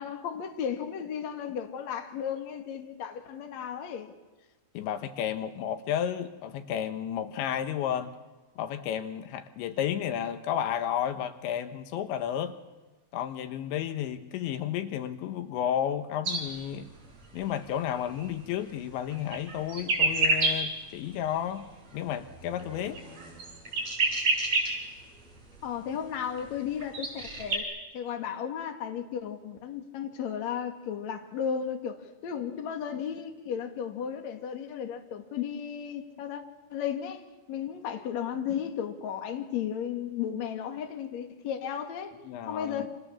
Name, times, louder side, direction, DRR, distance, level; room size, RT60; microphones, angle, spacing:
voice 1, 0.0-4.1 25.6-27.7 27.9-36.4 36.7-37.2 37.5-42.1 42.5-42.9, left 8 dB, 45° left, 2.8 m, -34 dB
voice 2, 4.7-8.2 8.6-12.6 13.1-16.9 17.3-23.0 42.2-42.9, left 10 dB, 85° left, 3.6 m, -32 dB
sound 1, 16.3-16.5 16.7-17.0 17.2-18.3 18.7-18.8 19.1-20.6 21.0-21.7 21.9-24.7 25.0-25.1 25.6-25.7 26.4-26.5 26.8-27.6, right 3 dB, 40° right, 6.5 m, -29 dB
28.5 x 27.5 x 7.2 m
omnidirectional pair, 5.2 m